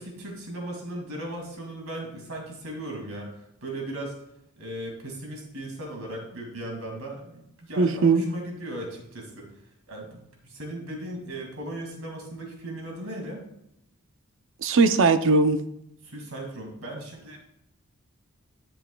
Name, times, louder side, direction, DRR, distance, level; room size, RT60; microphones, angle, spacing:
voice 1, 0.0-4.2 4.6-9.5 9.9-13.4 16.0-17.4, right 1 dB, 80° right, 1 dB, 2.2 m, -37 dB
voice 2, 7.8-8.2 14.6-15.6, right 3 dB, 60° right, 10 dB, 0.5 m, -19 dB
11.0 x 7.2 x 2.3 m, 0.79 s
head